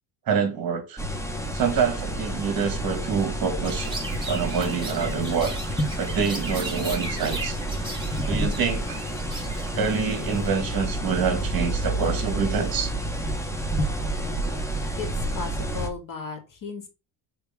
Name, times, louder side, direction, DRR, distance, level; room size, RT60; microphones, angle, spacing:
voice 1, 0.3-1.0 1.5-3.9 4.3-5.5 6.0-7.6 8.3-9.0 9.7-12.9, right 6 dB, 45° right, 2.3 m, -26 dB
sound 1, 1.0-15.9, right 1 dB, 5° left, 1.2 m, -29 dB
Chirp tweet, 3.6-10.5, right 2 dB, 10° right, 2.9 m, -37 dB
voice 2, 15.0-16.9, left 4 dB, 40° left, 2.5 m, -35 dB
7.0 x 4.5 x 3.6 m
cardioid pair, 135°, 48 cm